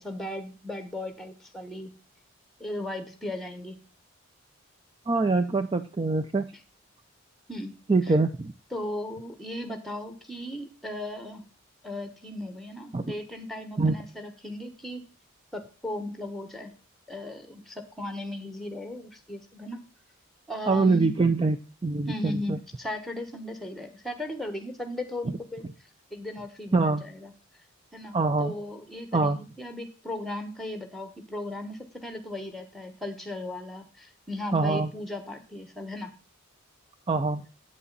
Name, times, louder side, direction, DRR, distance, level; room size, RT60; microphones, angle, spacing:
voice 1, 0.0-1.9 2.6-3.8 7.5-8.1 8.7-11.4 11.8-15.0 15.5-16.7 17.1-19.8 20.5-21.1 22.1-27.3 27.9-36.1, left 1 dB, ahead, 7 dB, 1.2 m, -37 dB
voice 2, 5.1-6.5 7.9-8.5 12.9-13.1 13.8-13.9 20.7-21.6 21.8-22.6 26.7-27.0 28.1-28.5 29.1-29.4 34.5-34.9 37.1-37.4, right 3 dB, 25° right, 9 dB, 0.4 m, -24 dB
8.5 x 8.4 x 4.0 m, 0.35 s
head